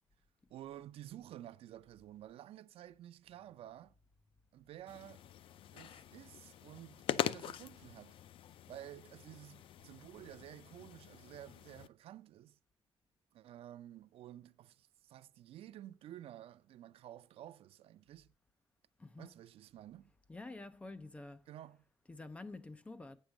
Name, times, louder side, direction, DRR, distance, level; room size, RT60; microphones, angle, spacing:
voice 1, 0.5-3.9 4.5-5.3 5.7-8.2 8.7-12.6 13.3-18.3 19.2-20.1 21.5-21.8, right 12 dB, 75° right, 0.4 m, -52 dB
sound 1, 4.9-11.9, left 11 dB, 60° left, 0.4 m, -43 dB
voice 2, 19.0-19.3 20.3-21.4 22.1-23.2, left 2 dB, 15° left, 0.6 m, -48 dB
8.9 x 6.4 x 7.0 m
cardioid pair, 175°, 10 cm